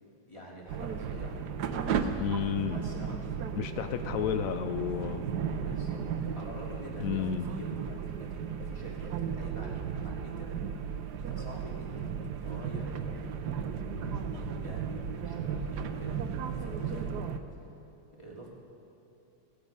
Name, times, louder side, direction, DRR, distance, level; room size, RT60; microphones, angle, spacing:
voice 1, 0.3-3.2 5.6-6.0 6.4-10.6 11.2-17.3 18.1-18.5, equal, 15° left, -3 dB, 2.7 m, -46 dB
sound 1, 0.7-17.4, right 7 dB, 65° right, 1.2 m, -35 dB
voice 2, 2.2-2.8 3.6-5.3 7.0-7.5, left 9 dB, 85° left, 8 dB, 0.7 m, -31 dB
17.5 x 14.5 x 5.4 m, 2.8 s
omnidirectional pair, 2.1 m